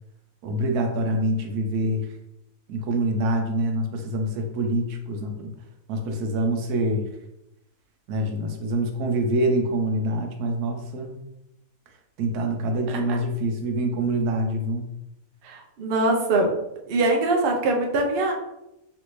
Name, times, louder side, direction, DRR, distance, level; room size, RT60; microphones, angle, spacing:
voice 1, 0.4-2.1 2.7-5.5 5.9-7.1 8.1-11.2 12.2-14.9, right 1 dB, 90° right, 4 dB, 1.1 m, -25 dB
voice 2, 15.4-16.5 16.9-18.3, right 2 dB, 65° right, 1 dB, 0.5 m, -22 dB
3.3 x 2.6 x 3.0 m, 0.88 s
omnidirectional pair, 1.6 m